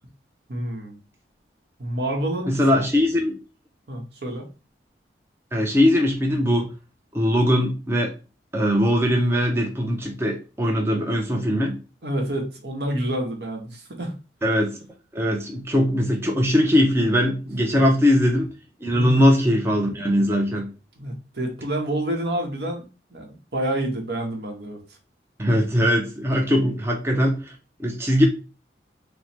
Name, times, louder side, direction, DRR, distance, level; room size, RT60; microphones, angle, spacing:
voice 1, 0.5-1.0 1.8-2.8 3.9-4.5 12.0-14.1 18.9-19.2 21.0-22.8 23.1-24.8, right 1 dB, 65° right, 2 dB, 0.9 m, -28 dB
voice 2, 2.5-3.4 5.5-6.7 7.1-8.1 8.5-11.8 14.4-14.8 15.1-18.5 18.8-20.7 25.4-28.3, equal, 15° right, 0 dB, 0.5 m, -21 dB
3.1 x 2.1 x 4.2 m, 0.32 s
head